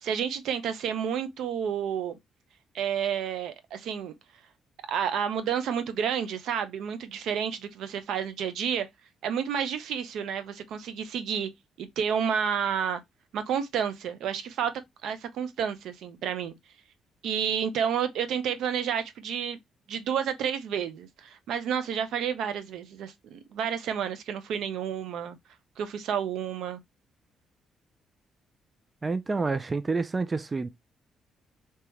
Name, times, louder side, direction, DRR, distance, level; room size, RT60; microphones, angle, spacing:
voice 1, 0.0-2.2 2.7-4.1 4.9-8.9 9.2-11.5 11.8-13.0 13.3-14.7 15.0-16.5 17.2-19.6 19.9-25.4 25.8-26.8, right 8 dB, 80° right, 0.6 m, -30 dB
voice 2, 29.0-30.7, right 3 dB, 25° right, 0.4 m, -28 dB
3.5 x 2.9 x 3.1 m
cardioid pair, 90°, 0 cm